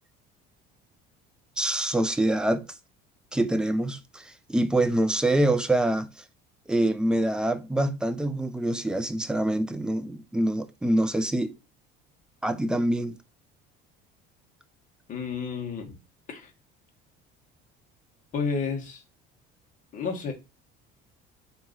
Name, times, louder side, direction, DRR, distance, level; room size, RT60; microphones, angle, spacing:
voice 1, 1.6-2.7 3.3-6.1 6.7-11.6 12.4-13.2, right 1 dB, 5° right, 0.3 m, -25 dB
voice 2, 15.1-15.9 16.3-16.5 18.3-19.0 19.9-20.3, left 5 dB, 40° left, 1.3 m, -31 dB
3.9 x 3.0 x 3.7 m
cardioid pair, 140°, 21 cm